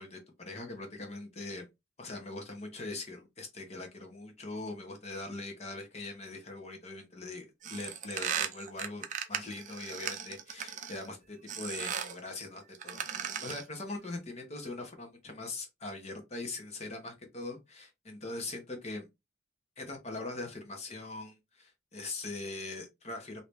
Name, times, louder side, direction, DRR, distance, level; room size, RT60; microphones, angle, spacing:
voice 1, 0.0-1.7 2.0-13.0 13.4-19.1 19.8-23.4, left 2 dB, 30° left, 0.8 m, -41 dB
sound 1, 7.6-11.1 11.5-12.2 12.7-13.7, right 8 dB, 40° right, 0.4 m, -37 dB
3.2 x 2.7 x 3.3 m
head